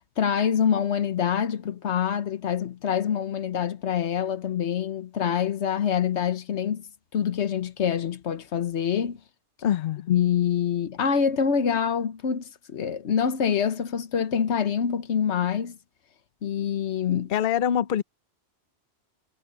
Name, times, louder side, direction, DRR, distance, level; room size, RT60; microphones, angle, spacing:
voice 1, 0.2-6.8 7.1-9.2 10.1-15.8 16.4-17.3, left 8 dB, 90° left, 1.3 m, -25 dB
voice 2, 9.6-10.1 17.3-18.0, left 9 dB, 60° left, 0.8 m, -24 dB
omnidirectional pair, 1.1 m